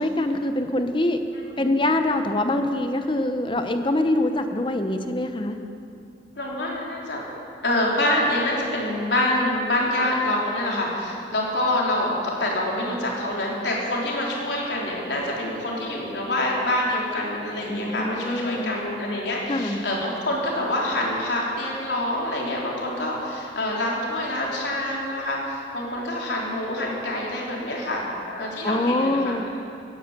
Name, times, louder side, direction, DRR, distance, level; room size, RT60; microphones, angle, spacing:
voice 1, 0.0-1.2 1.6-5.6 17.7-18.7 19.5-19.8 28.6-29.6, left 1 dB, 25° left, 7 dB, 0.8 m, -24 dB
voice 2, 1.3-1.6 6.4-7.2 7.6-29.3, left 1 dB, 75° left, -3 dB, 3.7 m, -26 dB
16.5 x 10.5 x 8.1 m, 2.6 s
head